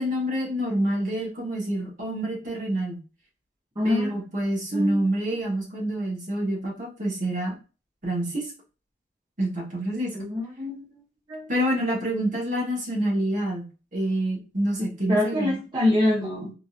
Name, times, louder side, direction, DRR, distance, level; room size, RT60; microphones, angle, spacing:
voice 1, 0.0-3.0 3.8-7.5 8.0-8.5 9.4-10.1 11.5-13.6 13.9-15.6, right 1 dB, 45° right, -3 dB, 1.3 m, -27 dB
voice 2, 3.8-4.2 4.7-5.1 10.1-11.0 11.3-11.5 14.8-16.5, left 1 dB, 25° right, -6 dB, 0.8 m, -25 dB
3.8 x 2.6 x 2.4 m, 0.33 s
head